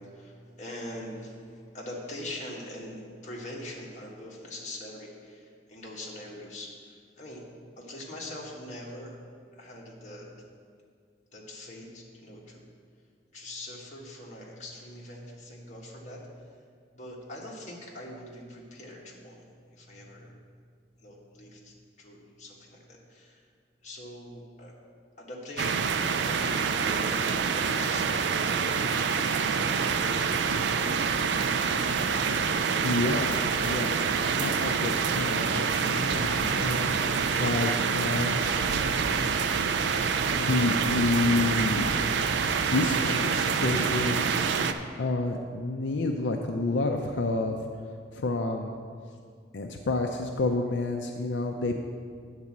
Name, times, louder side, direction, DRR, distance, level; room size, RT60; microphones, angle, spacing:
voice 1, 0.0-7.4 7.8-9.2 9.5-10.3 11.3-12.7 13.3-16.2 16.9-20.3 21.0-23.4 23.8-24.7 25.2-29.6, left 1 dB, 40° left, -3 dB, 1.5 m, -43 dB
sound 1, 25.6-44.7, right 5 dB, 70° right, 0.4 m, -26 dB
voice 2, 32.8-33.4 33.6-36.9 37.4-38.4 40.3-41.9 42.7-44.4 45.0-47.6 48.1-48.7 49.5-51.8, left 2 dB, 75° left, 3 dB, 0.5 m, -29 dB
9.6 x 4.1 x 7.3 m, 2.1 s
head